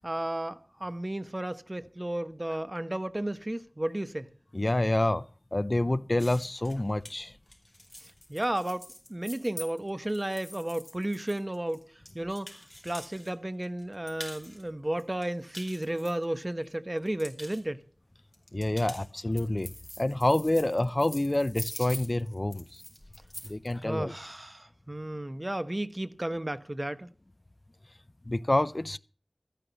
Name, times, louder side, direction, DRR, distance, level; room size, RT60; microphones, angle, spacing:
voice 1, 0.0-4.3 8.0-17.8 23.8-27.1, right 1 dB, 30° right, 1.0 m, -33 dB
voice 2, 4.5-5.2 5.5-7.3 18.5-19.7 20.0-22.8 23.4-24.1 28.3-29.0, left 1 dB, 40° left, 0.6 m, -27 dB
sound 1, 6.2-13.3 13.6-14.6 15.0-16.6 17.0-17.6 18.3-23.7, left 1 dB, 15° left, 4.5 m, -45 dB
14.0 x 10.0 x 6.9 m
wide cardioid pair, 50°, 0 cm